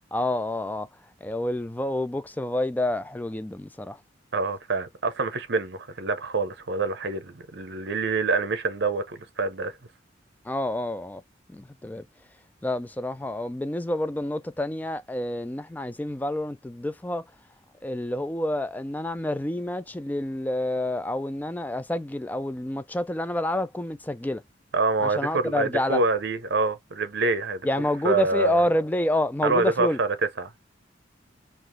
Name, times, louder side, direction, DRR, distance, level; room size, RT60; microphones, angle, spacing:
voice 1, 0.1-0.9 1.2-4.0 10.4-11.2 11.5-12.1 12.6-17.2 17.8-24.4 25.0-26.0 27.6-30.0, left 1 dB, 10° left, 0.3 m, -28 dB
voice 2, 4.3-9.8 24.7-27.7 28.0-28.7 29.4-30.1 30.4-30.5, right 3 dB, 65° right, 0.8 m, -26 dB
4.0 x 2.5 x 3.2 m
head